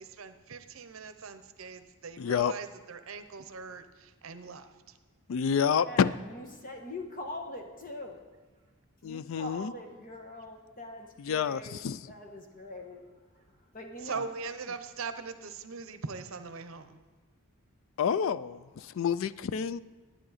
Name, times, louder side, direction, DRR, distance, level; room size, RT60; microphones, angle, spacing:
voice 1, 0.0-4.7 14.0-17.0, right 4 dB, 70° right, 10 dB, 0.7 m, -41 dB
voice 2, 2.2-2.5 5.3-6.1 9.0-9.7 11.2-12.0 18.0-19.8, left 7 dB, 65° left, 17 dB, 0.3 m, -28 dB
voice 3, 5.8-8.2 9.0-11.7 12.1-14.2, left 1 dB, 40° left, 3 dB, 1.2 m, -43 dB
10.5 x 9.9 x 4.1 m, 1.3 s
head